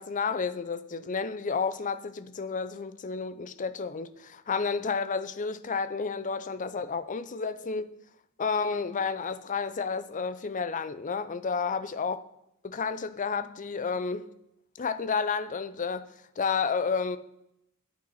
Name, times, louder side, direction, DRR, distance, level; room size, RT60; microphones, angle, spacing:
voice 1, 0.0-7.9 8.4-12.2 12.6-14.2 14.8-16.1 16.4-17.2, left 5 dB, 35° left, 0.5 m, -31 dB
8.8 x 7.6 x 5.6 m
head